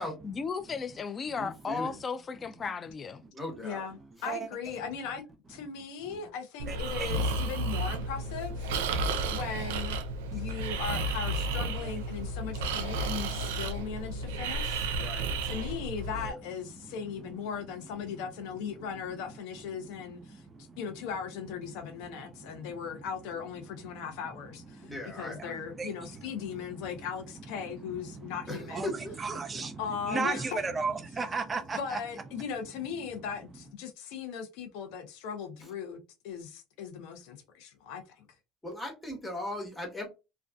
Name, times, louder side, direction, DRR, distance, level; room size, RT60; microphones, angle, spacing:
voice 1, 0.2-3.2, left 5 dB, 30° left, 0.3 m, -35 dB
voice 2, 1.4-1.9 3.3-3.8 14.9-15.4 24.8-25.6 28.5-29.6 38.6-40.1, left 1 dB, 10° left, 1.1 m, -38 dB
voice 3, 3.6-5.2 5.5-8.7 9.3-10.0 10.3-14.9 15.4-20.4 20.8-28.9 29.8-30.6 31.7-36.0 36.2-38.2, left 7 dB, 75° left, 0.6 m, -38 dB
Breathing, 6.6-16.3, right 2 dB, 90° right, 0.4 m, -32 dB
voice 4, 6.7-7.1 10.3-10.4 16.2-16.4 16.8-16.9 19.8-19.9 20.2-20.8 22.0-22.1 22.5-22.8 23.8-23.9 24.8-25.9 26.8-27.0 27.9-32.0, right 4 dB, 25° right, 0.6 m, -36 dB
2.4 x 2.3 x 2.3 m
supercardioid pair, 95°, 0 cm